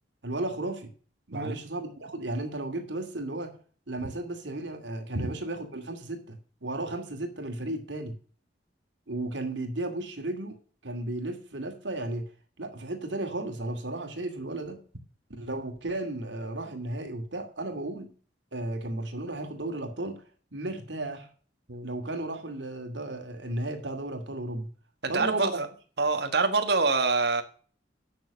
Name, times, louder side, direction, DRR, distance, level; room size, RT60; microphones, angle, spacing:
voice 1, 0.2-0.9 1.3-3.6 3.9-8.2 9.1-10.6 10.8-12.3 12.6-14.8 15.3-18.1 18.5-20.2 20.5-21.3 21.8-24.7 25.1-25.6, right 2 dB, 85° right, 2.4 m, -34 dB
voice 2, 25.0-25.7 26.0-27.4, right 3 dB, 65° right, 1.5 m, -26 dB
9.6 x 6.5 x 6.4 m
head